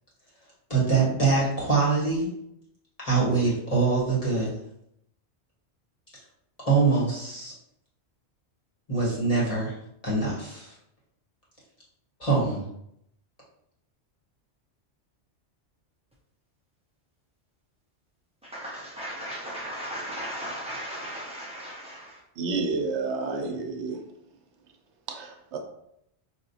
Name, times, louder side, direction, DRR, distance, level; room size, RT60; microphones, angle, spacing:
voice 1, 0.7-2.3 3.0-4.6 6.6-7.5 8.9-9.7 10.0-10.7 12.2-12.6, right 4 dB, 35° left, 1.6 m, -24 dB
voice 2, 18.4-22.1, equal, 10° right, 0.4 m, -36 dB
voice 3, 22.4-24.1 25.1-25.6, right 3 dB, 75° right, 0.9 m, -30 dB
4.8 x 2.8 x 2.7 m
omnidirectional pair, 1.2 m